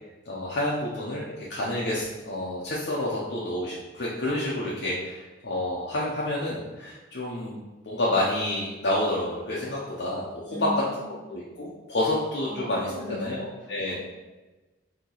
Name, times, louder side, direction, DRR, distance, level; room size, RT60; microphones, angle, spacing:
voice 1, 0.3-7.6 7.8-10.7 11.3-13.9, left 1 dB, 65° left, -6 dB, 0.7 m, -29 dB
voice 2, 10.5-11.0 12.4-13.4, left 1 dB, 45° right, -6 dB, 1.2 m, -36 dB
4.4 x 2.8 x 3.9 m, 1.2 s
head